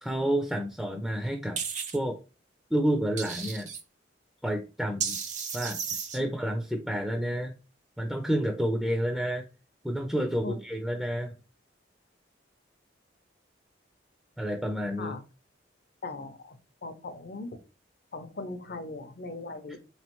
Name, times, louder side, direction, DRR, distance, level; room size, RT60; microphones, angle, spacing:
voice 1, 0.0-1.6 1.9-2.2 2.7-3.7 4.4-5.2 5.5-5.8 6.1-7.5 8.0-9.5 9.8-11.4 14.4-15.1 19.7-19.8, equal, ahead, 3 dB, 0.4 m, -29 dB
sound 1, 1.6-2.0 3.2-3.8 5.0-6.2, right 6 dB, 40° right, 0.6 m, -33 dB
voice 2, 16.0-16.6 16.8-17.5 18.1-19.8, left 3 dB, 55° left, 9 dB, 0.6 m, -39 dB
3.7 x 3.1 x 3.0 m, 0.31 s
head